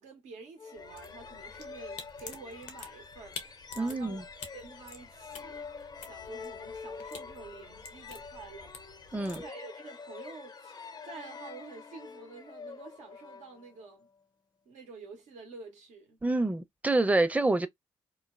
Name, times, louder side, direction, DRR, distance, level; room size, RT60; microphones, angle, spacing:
voice 1, 0.0-4.3 4.5-5.7 6.0-8.7 9.1-14.1 14.7-16.2, right 4 dB, 80° right, 0.8 m, -49 dB
sound 1, 0.6-14.1, left 5 dB, 35° left, 0.5 m, -46 dB
sound 2, 0.7-9.5, left 5 dB, 80° left, 0.7 m, -49 dB
voice 2, 3.8-4.2 9.1-9.4 16.2-17.7, right 2 dB, 10° right, 0.5 m, -27 dB
3.1 x 2.0 x 2.3 m
supercardioid pair, 45°, 12 cm